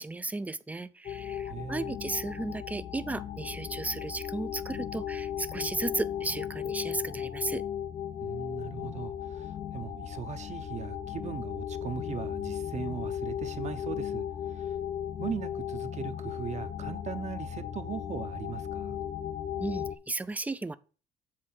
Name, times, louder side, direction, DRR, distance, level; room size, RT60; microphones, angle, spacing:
voice 1, 0.0-7.6 19.6-20.8, right 2 dB, 10° right, 0.5 m, -34 dB
sound 1, 1.1-20.0, left 9 dB, 40° left, 0.6 m, -36 dB
voice 2, 1.5-1.9 8.2-14.2 14.5-14.7 15.2-19.0, right 7 dB, 45° right, 0.9 m, -39 dB
7.6 x 3.6 x 5.9 m
cardioid pair, 110°, 17 cm